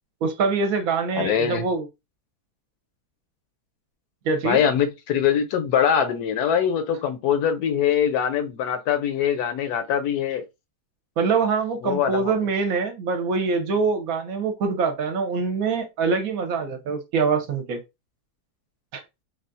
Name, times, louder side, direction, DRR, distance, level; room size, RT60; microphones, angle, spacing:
voice 1, 0.2-1.8 4.2-4.6 11.2-17.8 18.9-19.0, right 4 dB, 70° right, 1.0 m, -24 dB
voice 2, 1.1-1.6 4.4-10.4 11.8-12.4, left 8 dB, 75° left, 1.1 m, -23 dB
3.4 x 2.3 x 2.5 m
omnidirectional pair, 1.7 m